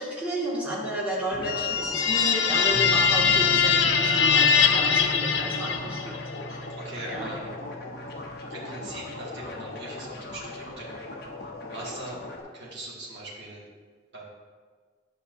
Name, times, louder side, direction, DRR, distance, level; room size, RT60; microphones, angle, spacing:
voice 1, 0.0-6.1 6.5-6.6 7.1-7.3, right 1 dB, 10° right, -8 dB, 1.9 m, -32 dB
sound 1, 1.3-12.4, left 2 dB, 50° left, 0.8 m, -39 dB
sound 2, 1.4-6.2, left 6 dB, 70° left, 0.5 m, -22 dB
sound 3, 2.7-12.3, equal, 10° left, 0.4 m, -40 dB
voice 2, 6.8-7.5 8.5-11.0 11.7-12.2 12.5-13.6 14.1-14.2, right 1 dB, 60° right, -6 dB, 1.9 m, -40 dB
10.5 x 5.7 x 2.6 m, 1.5 s
head